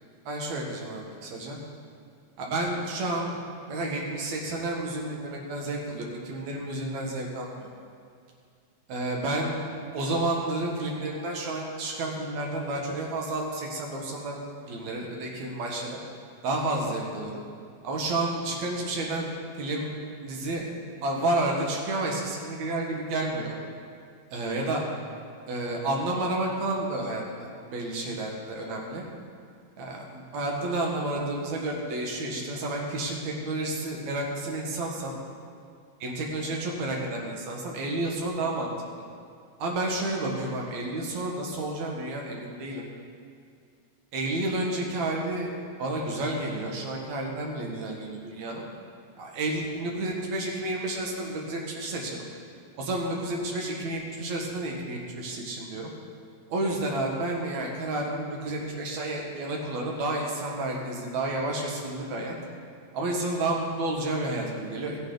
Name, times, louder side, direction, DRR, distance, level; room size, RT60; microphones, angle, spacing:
voice 1, 0.3-1.6 2.4-3.4 3.7-7.7 8.9-14.4 14.7-16.0 16.4-17.4 17.8-19.9 20.2-20.7 21.0-23.5 24.3-24.8 25.5-29.0 29.8-35.2 36.0-38.7 39.6-42.8 44.1-45.5 45.8-48.6 49.2-52.2 52.8-55.9 56.5-62.4 62.9-65.0, right 2 dB, 70° right, -1 dB, 2.8 m, -30 dB
15.5 x 8.8 x 3.9 m, 2.3 s
omnidirectional pair, 3.3 m